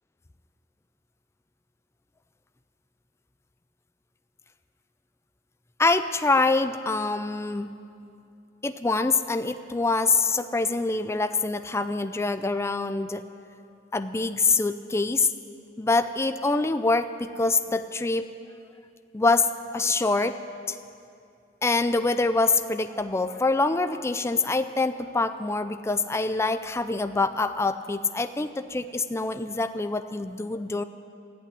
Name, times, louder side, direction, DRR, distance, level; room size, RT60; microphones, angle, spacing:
voice 1, 5.8-7.7 8.6-13.2 13.9-15.3 15.8-18.3 19.1-20.4 20.7-20.8 21.6-30.8, left 3 dB, 15° left, 10 dB, 0.4 m, -25 dB
14.5 x 8.4 x 10.0 m, 2.5 s
head